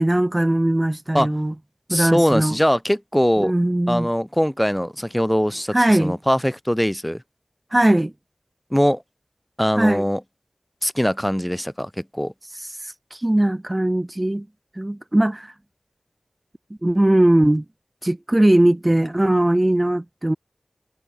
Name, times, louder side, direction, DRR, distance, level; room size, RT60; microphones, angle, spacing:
voice 1, 0.0-1.5 1.9-2.5 3.4-4.1 5.7-6.2 7.7-8.1 9.8-10.0 12.6-14.5 14.8-15.5 16.8-17.6 18.0-20.4, right 1 dB, 25° right, 5.8 m, -19 dB
voice 2, 1.9-3.5 3.9-7.2 8.7-9.0 9.6-10.2 10.8-12.3, equal, 5° left, 3.8 m, -21 dB
wide cardioid pair, 55°, 0 cm